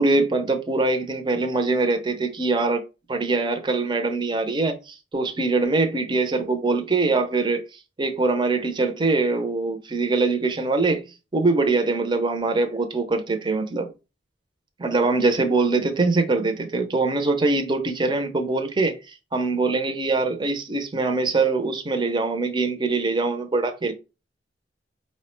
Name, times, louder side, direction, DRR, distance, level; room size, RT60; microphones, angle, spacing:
voice 1, 0.0-2.8 3.1-7.6 8.0-11.0 11.3-13.9 14.8-18.9 19.3-23.9, right 3 dB, 25° right, 0.6 m, -23 dB
4.5 x 2.1 x 4.3 m
head